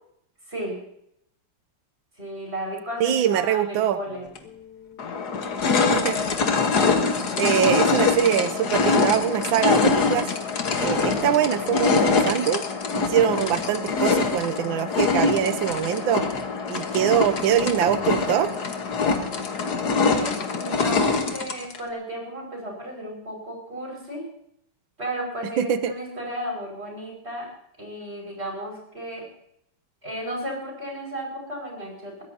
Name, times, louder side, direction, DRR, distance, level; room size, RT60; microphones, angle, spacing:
voice 1, 0.5-0.8 2.2-4.3 20.0-24.3 25.0-27.5 27.8-29.3 30.0-32.2, right 1 dB, 30° right, -1 dB, 6.2 m, -34 dB
voice 2, 3.0-4.0 5.8-6.2 7.3-10.3 10.8-12.6 12.9-16.3 16.7-18.5 25.6-25.9, right 9 dB, 90° right, 12 dB, 1.6 m, -23 dB
sound 1, 4.4-4.5 5.0-21.8, left 4 dB, 60° left, 2.0 m, -24 dB
22.5 x 16.0 x 2.9 m, 0.73 s
omnidirectional pair, 2.1 m